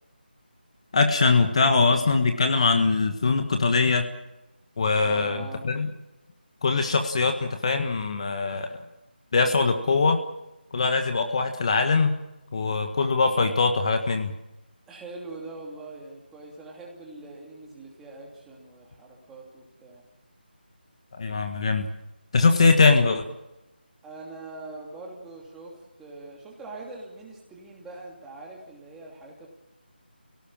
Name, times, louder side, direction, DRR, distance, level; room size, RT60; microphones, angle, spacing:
voice 1, 0.9-4.0 4.8-5.9 6.6-8.8 9.3-10.2 10.7-12.1 12.5-14.3 21.2-21.9 22.3-23.2, left 4 dB, 35° left, 6 dB, 1.6 m, -22 dB
voice 2, 5.0-5.7 14.9-20.0 24.0-29.5, right 2 dB, 5° right, -2 dB, 2.8 m, -42 dB
28.5 x 18.0 x 7.4 m, 0.96 s
figure-of-eight pair, 170°, 6 cm